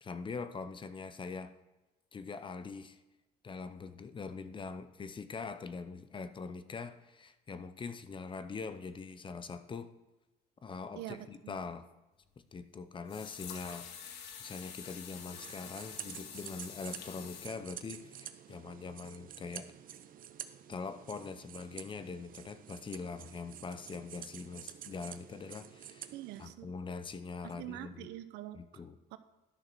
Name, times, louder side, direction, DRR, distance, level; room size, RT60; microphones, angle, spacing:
voice 1, 0.0-1.5 2.1-3.0 3.4-9.9 10.6-11.9 12.5-19.7 20.7-26.1 26.4-28.1 28.5-29.0, left 4 dB, 30° left, 12 dB, 0.8 m, -43 dB
voice 2, 11.0-11.6 26.1-26.7 27.4-28.6 29.1-29.2, right 14 dB, 90° right, 12 dB, 0.7 m, -45 dB
sound 1, 12.2-12.3 13.1-17.5, left 8 dB, 85° left, 1.4 m, -47 dB
sound 2, 15.1-26.5, right 10 dB, 55° right, 0.7 m, -49 dB
11.5 x 6.5 x 6.1 m, 1.1 s
cardioid pair, 110°, 17 cm